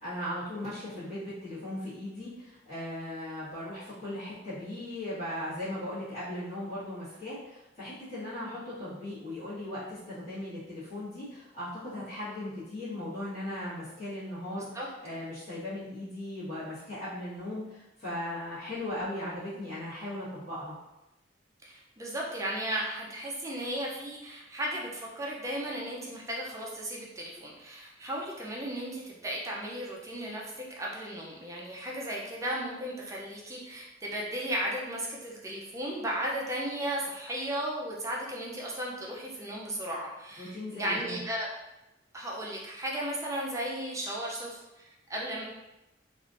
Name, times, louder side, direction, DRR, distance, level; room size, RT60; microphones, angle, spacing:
voice 1, 0.0-20.7 40.4-41.2, left 1 dB, 35° left, -14 dB, 1.5 m, -38 dB
voice 2, 21.6-41.5 42.1-45.5, right 1 dB, 15° right, -3 dB, 0.4 m, -35 dB
3.2 x 2.5 x 2.5 m, 0.98 s
head